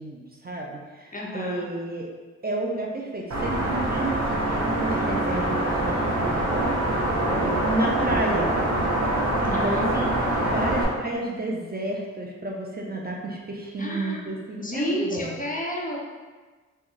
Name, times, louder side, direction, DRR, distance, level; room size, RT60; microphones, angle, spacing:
voice 1, 0.0-2.1 2.4-6.8 7.6-8.5 9.4-10.1 10.4-15.3, right 2 dB, 30° right, -1 dB, 0.5 m, -31 dB
voice 2, 1.1-1.7 9.5-10.9 13.8-16.0, left 1 dB, 25° left, -2 dB, 0.7 m, -32 dB
sound 1, 3.3-10.8, right 1 dB, 55° right, 0.8 m, -24 dB
3.4 x 2.3 x 3.1 m, 1.3 s
cardioid pair, 55°, 31 cm